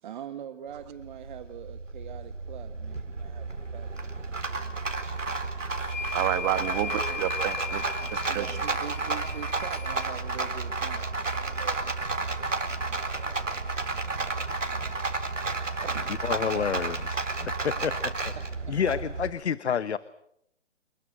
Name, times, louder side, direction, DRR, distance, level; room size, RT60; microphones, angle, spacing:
voice 1, 0.0-6.1 6.7-7.3 8.3-15.0 15.8-16.9 18.0-18.7 19.8-19.9, right 9 dB, 40° right, 8 dB, 1.7 m, -45 dB
Rattle, 0.7-19.3, right 3 dB, 85° right, 4.1 m, -32 dB
sound 1, 5.8-10.1, left 6 dB, 90° left, 1.5 m, -37 dB
voice 2, 6.1-8.6, right 14 dB, 20° right, 12 dB, 1.6 m, -30 dB
voice 3, 16.2-17.9 18.7-20.0, left 7 dB, 65° left, 16 dB, 1.1 m, -29 dB
28.5 x 20.5 x 7.8 m, 0.77 s
figure-of-eight pair, 140°, 36 cm